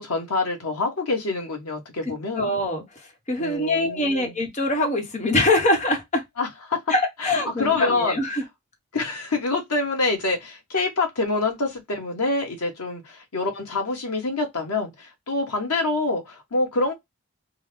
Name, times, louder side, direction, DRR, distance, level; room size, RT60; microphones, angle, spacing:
voice 1, 0.0-2.5 3.4-4.3 6.4-6.8 7.2-7.3 7.6-8.2 8.9-16.9, left 3 dB, 90° left, 1.4 m, -26 dB
voice 2, 2.4-2.8 3.3-6.2 6.9-8.4, left 2 dB, 30° left, 1.0 m, -23 dB
3.6 x 2.2 x 3.2 m
head